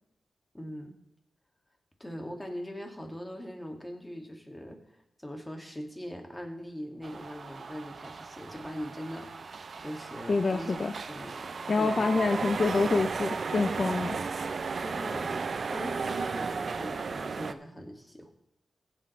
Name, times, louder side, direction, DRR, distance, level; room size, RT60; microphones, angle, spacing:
voice 1, 0.5-0.9 2.0-10.8 11.1-11.5 11.8-12.5 14.8-18.3, equal, 15° left, 3 dB, 2.3 m, -41 dB
sound 1, 7.0-17.5, right 4 dB, 65° right, 0.5 m, -35 dB
voice 2, 10.3-10.9 11.7-14.2, left 3 dB, 55° left, 7 dB, 0.6 m, -26 dB
15.0 x 7.7 x 3.3 m, 0.86 s
cardioid pair, 50°, 0 cm